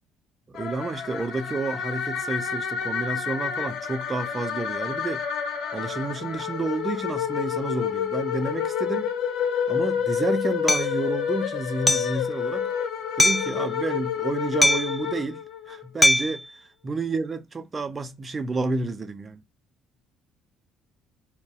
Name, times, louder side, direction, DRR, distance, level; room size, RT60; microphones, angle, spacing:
sound 1, 0.5-15.8, left 8 dB, 60° left, 0.6 m, -29 dB
voice 1, 0.5-5.2 5.7-9.1 9.7-12.7 13.2-16.5 16.8-19.4, right 3 dB, 30° right, 0.6 m, -30 dB
Hammer, 10.7-10.9 11.9-12.2 13.2-13.5 14.6-15.0 16.0-16.4, left 1 dB, 10° left, 0.3 m, -20 dB
3.9 x 2.3 x 3.6 m
figure-of-eight pair, 50°, 0 cm